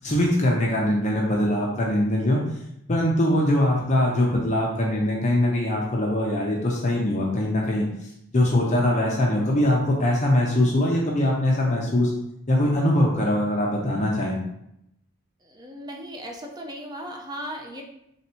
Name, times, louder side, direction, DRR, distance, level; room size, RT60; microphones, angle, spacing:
voice 1, 0.0-2.4 2.9-7.9 8.3-12.1 12.5-14.4, left 1 dB, 35° left, -3 dB, 0.7 m, -22 dB
voice 2, 15.4-17.8, equal, 20° right, 1 dB, 0.5 m, -37 dB
3.5 x 2.7 x 4.3 m, 0.79 s
head